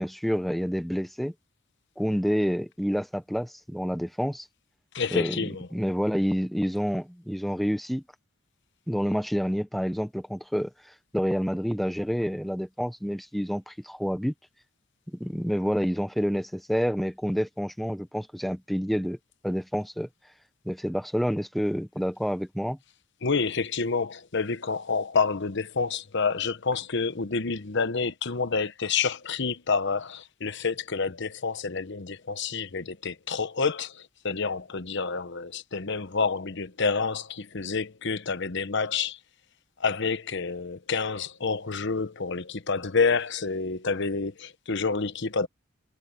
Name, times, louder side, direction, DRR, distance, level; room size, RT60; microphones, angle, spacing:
voice 1, 0.0-1.3 2.0-4.4 5.1-8.0 8.9-10.7 11.1-14.3 15.1-19.2 19.4-20.1 20.6-22.8, equal, ahead, 1.1 m, -28 dB
voice 2, 4.9-5.7 23.2-39.2 39.8-45.5, left 4 dB, 60° left, 1.0 m, -28 dB
head